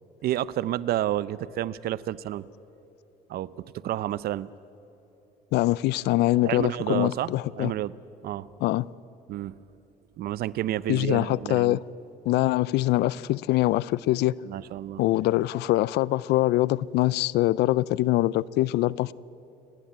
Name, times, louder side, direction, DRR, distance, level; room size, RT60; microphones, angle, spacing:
voice 1, 0.2-2.5 3.3-4.5 6.4-7.3 7.6-8.0 8.2-8.5 9.3-9.5 10.2-11.8 14.4-15.0, right 13 dB, 65° right, 0.6 m, -30 dB
voice 2, 5.5-7.7 8.6-8.9 10.9-11.8 12.3-14.3 15.0-19.1, left 16 dB, 80° left, 0.5 m, -23 dB
29.5 x 12.0 x 9.4 m
cardioid pair, 110°, 17 cm